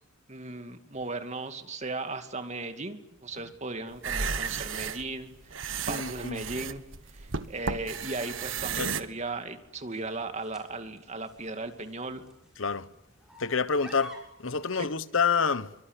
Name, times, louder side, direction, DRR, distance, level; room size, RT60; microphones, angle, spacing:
voice 1, 0.3-5.5 5.9-6.8 7.1-12.2, right 3 dB, 35° right, 2.4 m, -37 dB
sound 1, 3.1-14.6, right 1 dB, 5° right, 6.9 m, -55 dB
sound 2, 3.9-9.0, right 5 dB, 80° right, 1.5 m, -33 dB
voice 2, 5.9-6.5 8.8-9.0 12.6-12.9 13.4-15.7, left 5 dB, 85° left, 1.2 m, -28 dB
25.0 x 24.5 x 9.9 m
head